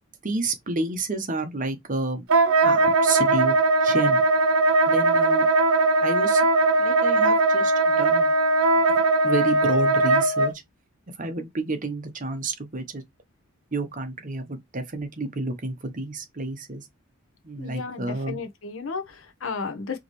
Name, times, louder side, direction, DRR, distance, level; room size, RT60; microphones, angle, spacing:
voice 1, 0.2-2.2 2.6-3.6 3.8-4.2 4.9-5.5 6.0-6.5 6.8-8.3 8.8-9.0 9.2-10.5 11.2-13.0 13.7-16.8 17.4-18.4, right 3 dB, 40° right, 0.9 m, -30 dB
Wind instrument woodwind instrument, 2.3-10.5, right 2 dB, 85° right, 0.8 m, -20 dB
voice 2, 17.6-20.0, left 4 dB, 65° left, 0.8 m, -33 dB
4.8 x 3.0 x 3.1 m
head